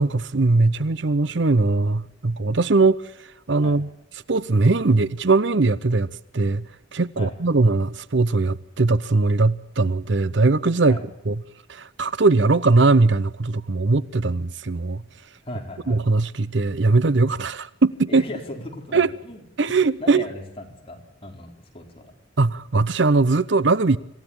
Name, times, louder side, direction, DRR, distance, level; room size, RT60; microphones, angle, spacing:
voice 1, 0.0-3.0 3.5-3.9 4.3-6.1 6.3-6.6 6.9-11.0 11.3-11.4 11.7-15.0 15.9-18.2 18.9-19.1 19.6-20.2 22.4-24.0, right 3 dB, 60° right, 0.8 m, -20 dB
voice 2, 15.4-16.0 18.1-19.4 19.7-22.1, left 1 dB, 30° left, 4.4 m, -37 dB
26.5 x 15.5 x 8.9 m
head